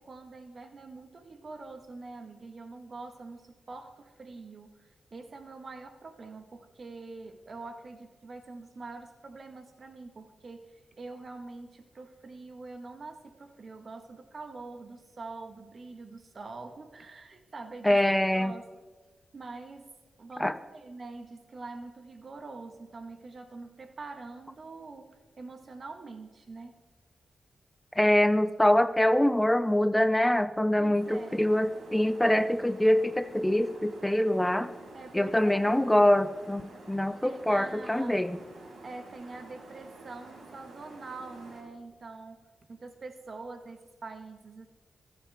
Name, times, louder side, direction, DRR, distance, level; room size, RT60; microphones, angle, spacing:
voice 1, 0.0-18.0 18.3-18.8 19.3-26.8 30.8-31.5 34.9-36.0 37.2-38.3 38.8-44.7, right 3 dB, 55° right, 6 dB, 1.7 m, -45 dB
voice 2, 17.8-18.5 20.4-20.5 28.0-34.7 35.1-38.4, left 1 dB, 10° left, 12 dB, 0.7 m, -24 dB
sound 1, 31.0-41.6, right 2 dB, 75° right, 5.1 m, -49 dB
22.5 x 8.5 x 3.7 m, 1.3 s
cardioid pair, 50°, 0 cm